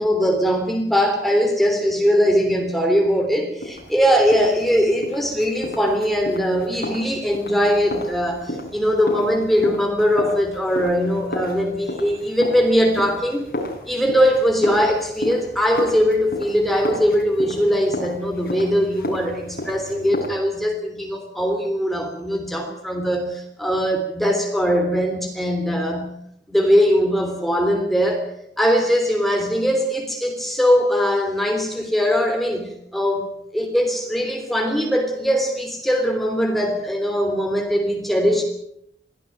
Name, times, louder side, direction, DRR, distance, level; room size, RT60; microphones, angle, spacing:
voice 1, 0.0-13.4 13.9-26.1 26.5-28.3 28.6-38.4, equal, ahead, 3 dB, 3.3 m, -21 dB
sound 1, 3.6-20.3, left 1 dB, 55° left, 5.9 m, -33 dB
22.5 x 14.5 x 9.2 m, 0.74 s
head